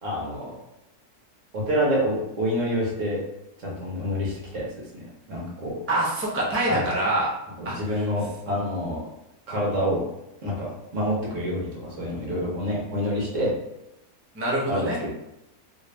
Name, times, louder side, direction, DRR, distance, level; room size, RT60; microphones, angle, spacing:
voice 1, 0.0-0.6 1.5-3.2 3.6-5.8 6.7-6.9 7.6-9.0 9.5-10.0 10.4-10.7 10.9-13.5 14.7-14.9, equal, 60° right, -4 dB, 1.4 m, -27 dB
voice 2, 5.9-7.3 7.6-7.7 14.4-15.0, right 1 dB, 20° right, -5 dB, 0.4 m, -25 dB
3.2 x 2.6 x 3.3 m, 0.89 s
omnidirectional pair, 1.6 m